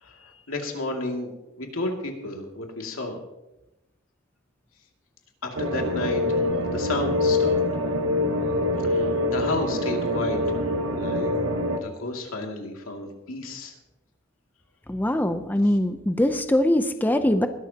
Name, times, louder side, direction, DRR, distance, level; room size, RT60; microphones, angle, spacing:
voice 1, 0.0-1.3 1.6-3.2 5.4-6.4 6.7-7.6 8.8-10.4 10.9-11.3 11.8-13.7, left 2 dB, 90° left, 2 dB, 2.5 m, -32 dB
sound 1, 5.6-11.8, left 1 dB, 80° right, 1.2 m, -25 dB
voice 2, 14.9-17.5, left 1 dB, 10° left, 8 dB, 0.6 m, -22 dB
21.0 x 12.5 x 2.9 m, 0.95 s
head